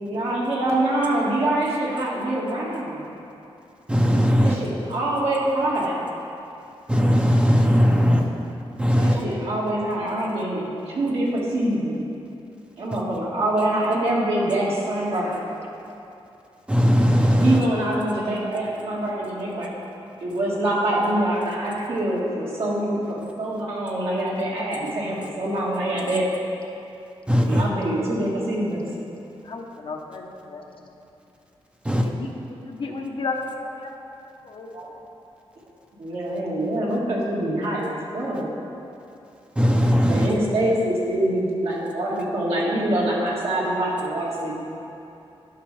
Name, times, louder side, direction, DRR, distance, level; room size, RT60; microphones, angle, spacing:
voice 1, 0.0-3.0 4.4-6.0 9.0-12.0 12.8-15.4 17.4-19.7 20.2-26.2 27.4-28.8 34.7-34.9 36.0-38.5 40.1-44.5, right 1 dB, 75° right, -6 dB, 1.8 m, -25 dB
voice 2, 3.9-4.5 6.9-8.2 8.8-9.2 16.7-17.6 27.3-27.6 31.9-32.0 39.6-40.3, equal, 10° right, 1 dB, 0.5 m, -18 dB
voice 3, 29.5-30.6 32.0-32.3 32.6-33.9 34.4-34.8, left 3 dB, 60° left, 2 dB, 0.9 m, -33 dB
11.5 x 5.5 x 3.3 m, 2.8 s
wide cardioid pair, 100°, 10 cm